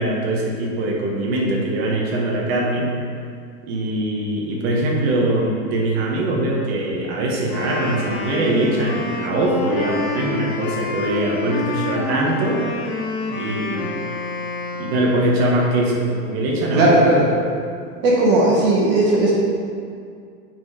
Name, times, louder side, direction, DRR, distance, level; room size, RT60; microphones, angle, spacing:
voice 1, 0.0-2.9 3.6-12.6 13.3-13.9 14.7-16.9, right 1 dB, 40° right, -2 dB, 1.5 m, -22 dB
Wind instrument woodwind instrument, 7.4-15.5, left 3 dB, 35° left, 0.8 m, -28 dB
voice 2, 16.7-17.2 18.0-19.3, right 2 dB, 20° right, -4 dB, 0.9 m, -16 dB
8.2 x 4.7 x 5.0 m, 2.3 s
supercardioid pair, 160°, 48 cm